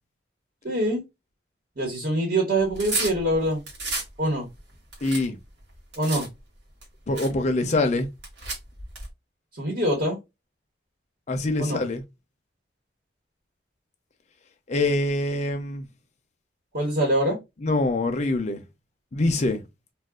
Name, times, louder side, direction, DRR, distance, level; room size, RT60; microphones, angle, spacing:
voice 1, 0.6-1.0 1.8-3.6 4.2-4.5 6.0-6.3 9.6-10.2 11.6-11.8 16.7-17.4, right 1 dB, 55° right, 1.2 m, -24 dB
sound 1, 2.6-4.1 4.6-6.3 6.8-6.9 7.1-7.4 8.2-9.1, right 3 dB, 80° right, 1.1 m, -32 dB
voice 2, 5.0-5.4 7.1-8.1 11.3-12.0 14.7-15.9 17.6-18.6 19.1-19.6, left 2 dB, 40° left, 0.5 m, -24 dB
2.4 x 2.3 x 3.5 m
head